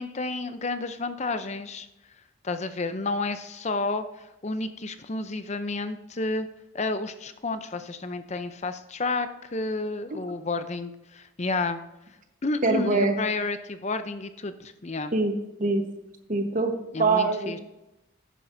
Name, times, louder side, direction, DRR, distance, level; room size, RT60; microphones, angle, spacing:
voice 1, 0.0-1.9 2.4-4.0 4.4-6.5 6.7-11.8 12.4-15.1 16.9-17.6, left 3 dB, 35° left, 10 dB, 0.6 m, -31 dB
voice 2, 12.6-13.2 15.1-15.3 15.6-15.8 16.3-16.7 17.0-17.6, right 3 dB, 40° right, 5 dB, 1.2 m, -23 dB
11.5 x 9.3 x 2.7 m, 0.93 s
head